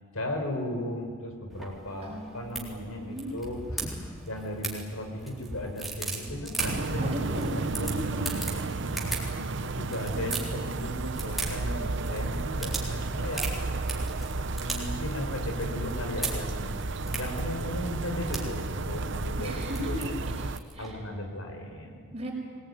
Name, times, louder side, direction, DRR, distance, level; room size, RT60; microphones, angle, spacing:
voice 1, 0.1-7.9 9.0-13.5 14.5-16.8 17.1-19.6 19.9-20.0 20.8-22.1, left 1 dB, 75° left, 4 dB, 4.7 m, -36 dB
sound 1, 1.5-20.9, right 2 dB, ahead, 3.8 m, -39 dB
voice 2, 2.0-3.3 7.0-7.5 7.8-8.4 10.1-11.0 19.4-21.0 22.1-22.3, equal, 30° right, -1 dB, 5.8 m, -38 dB
sound 2, 6.6-20.6, right 3 dB, 55° right, 0.8 m, -32 dB
24.5 x 19.5 x 9.6 m, 2.1 s
head